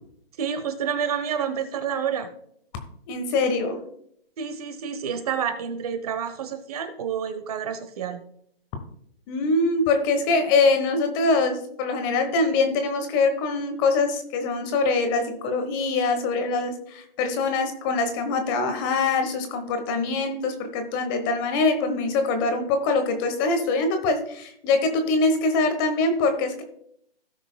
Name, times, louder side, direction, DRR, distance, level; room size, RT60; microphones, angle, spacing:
voice 1, 0.4-2.3 4.4-8.2, right 7 dB, 40° right, 9 dB, 0.9 m, -29 dB
voice 2, 3.1-3.8 9.3-26.6, left 3 dB, 20° left, 7 dB, 1.0 m, -23 dB
17.0 x 6.0 x 2.2 m, 0.69 s
hypercardioid pair, 150°, 30 cm